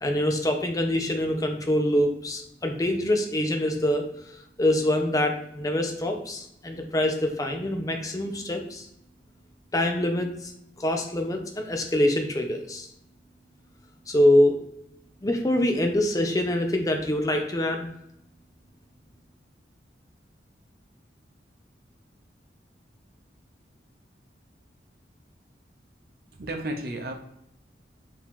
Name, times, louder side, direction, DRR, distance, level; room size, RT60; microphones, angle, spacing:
voice 1, 0.0-4.1 4.6-8.9 9.7-10.5 10.8-12.9 14.1-14.5 15.2-17.9, left 1 dB, 20° left, 4 dB, 0.5 m, -25 dB
voice 2, 26.3-27.1, right 1 dB, 55° right, 3 dB, 0.7 m, -32 dB
4.6 x 2.8 x 3.6 m, 0.78 s
head